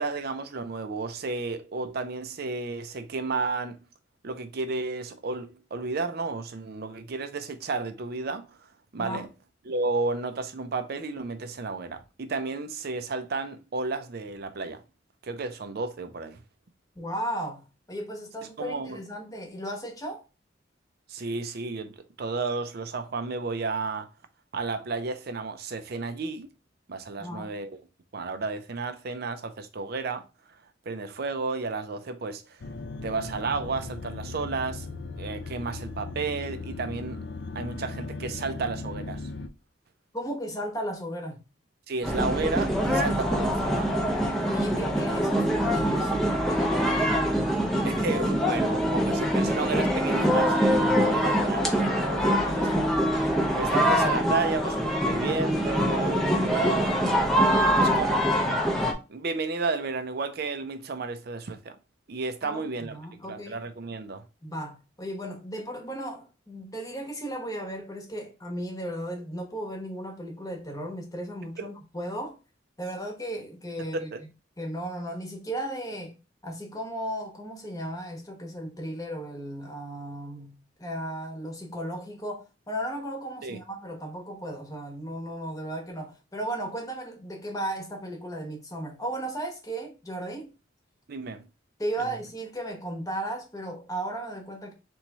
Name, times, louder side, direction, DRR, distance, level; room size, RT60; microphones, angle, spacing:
voice 1, 0.0-3.8 4.2-8.5 8.9-9.3 9.7-14.8 15.2-16.4 18.6-19.0 21.1-24.1 24.5-26.5 26.9-27.7 28.1-30.2 30.9-32.6 33.0-34.9 35.2-37.3 37.5-39.2 41.9-43.9 47.8-52.6 53.6-57.0 57.2-57.4 57.8-58.6 59.1-61.8 62.1-63.0 63.2-64.2 71.6-71.7 73.9-74.2 83.4-83.6 91.1-91.5, right 3 dB, 55° right, 0.5 m, -32 dB
voice 2, 16.9-20.2 27.2-27.5 40.1-41.4 44.5-47.2 52.3-53.0 57.6-57.9 62.4-63.6 64.4-72.4 72.8-74.1 74.6-76.1 76.4-90.5 91.8-94.7, right 1 dB, 20° left, 1.0 m, -35 dB
sound 1, 32.6-39.5, left 3 dB, 65° left, 0.5 m, -38 dB
sound 2, 42.0-58.9, equal, ahead, 0.6 m, -24 dB
3.5 x 3.1 x 4.1 m
head